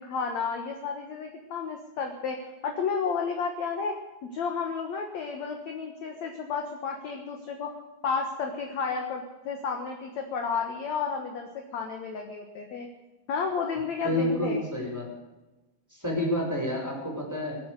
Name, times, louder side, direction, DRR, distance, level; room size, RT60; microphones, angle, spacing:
voice 1, 0.0-3.9 4.3-7.7 8.0-12.9 13.3-14.6, left 5 dB, 55° left, 3 dB, 2.3 m, -32 dB
voice 2, 14.0-15.1 15.9-17.6, left 1 dB, 5° right, -1 dB, 5.1 m, -29 dB
23.5 x 8.9 x 6.6 m, 1.1 s
omnidirectional pair, 4.5 m